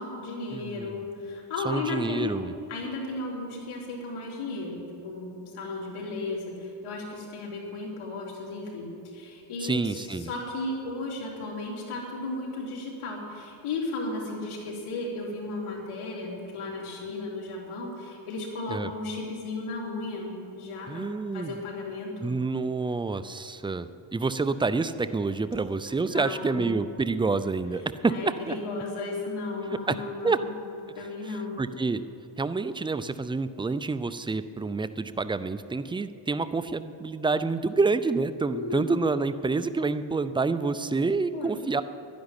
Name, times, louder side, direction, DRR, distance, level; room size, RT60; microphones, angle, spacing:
voice 1, 0.0-2.4 2.7-21.1 21.3-22.3 26.1-26.7 28.1-30.5 31.0-31.6 38.5-39.0 41.3-41.6, left 2 dB, 80° left, -2 dB, 3.9 m, -35 dB
voice 2, 0.5-1.0 1.6-2.5 9.6-10.3 18.7-18.9 20.9-21.5 22.2-28.6 29.9-30.0 30.2-30.4 31.3-32.0 32.4-41.8, right 3 dB, 10° right, 12 dB, 0.4 m, -28 dB
11.5 x 10.5 x 9.8 m, 2.7 s
cardioid pair, 100°, 50 cm